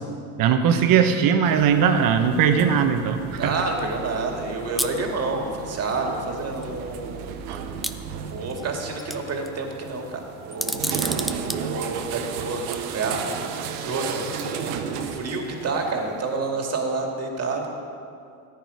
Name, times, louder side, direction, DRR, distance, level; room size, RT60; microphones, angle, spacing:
voice 1, 0.4-3.5, right 7 dB, 50° right, 7 dB, 1.2 m, -19 dB
sound 1, 1.4-16.4, right 7 dB, 85° right, 1.1 m, -34 dB
voice 2, 3.4-7.3 8.1-10.8 11.4-12.6 12.9-13.3 13.8-17.7, right 3 dB, 35° right, 2 dB, 2.2 m, -29 dB
sound 2, 4.8-5.0 6.1-6.2 6.6-6.7 7.8-8.6 9.0-9.5 10.5-11.6 12.6-12.8, equal, ahead, 0.3 m, -29 dB
14.0 x 10.0 x 5.0 m, 2.5 s
supercardioid pair, 95°, 43 cm